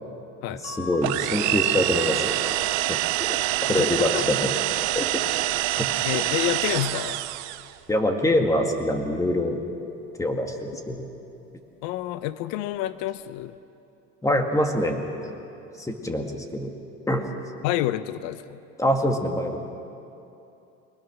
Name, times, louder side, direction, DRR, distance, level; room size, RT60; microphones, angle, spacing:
sound 1, 0.6-7.3 7.9-9.3 10.5-11.0 11.3-11.4, right 1 dB, 60° left, 5.7 m, -46 dB
voice 1, 0.6-2.3 2.7-3.4 3.7-4.5 5.0-5.2 5.8-5.9 7.9-9.6 10.2-11.1 14.2-15.4 15.8-16.7 17.1-17.2 18.8-19.6, left 1 dB, 10° left, 4 dB, 2.0 m, -25 dB
sound 2, 1.0-7.7, right 17 dB, 75° right, 0.7 m, -26 dB
voice 2, 3.7-4.2 6.0-7.3 11.8-13.6 17.6-18.6, left 14 dB, 75° left, 14 dB, 0.8 m, -28 dB
23.0 x 20.0 x 6.2 m, 2.8 s
cardioid pair, 115°, 29 cm